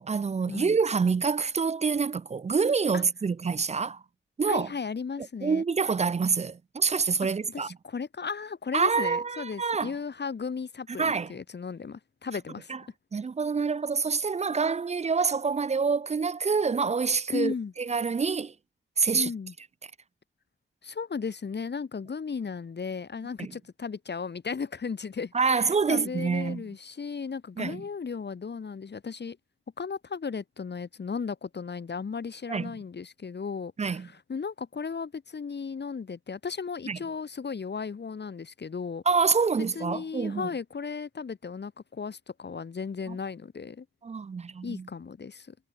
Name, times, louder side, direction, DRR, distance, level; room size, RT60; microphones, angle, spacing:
voice 1, 0.0-4.0 4.4-4.7 5.4-7.7 8.7-9.9 11.0-11.3 12.7-12.8 13.1-18.5 19.0-19.3 23.4-23.5 25.3-26.6 27.6-27.8 32.5-32.7 33.8-34.1 36.9-37.0 39.1-40.5 43.1-43.2 44.0-44.9, right 5 dB, 35° right, 0.4 m, -26 dB
voice 2, 4.5-5.6 7.5-12.7 17.3-17.7 19.1-19.5 20.8-29.4 29.8-39.0 39.7-43.8 44.6-45.5, left 5 dB, 55° left, 1.4 m, -35 dB
wide cardioid pair, 110°, 21 cm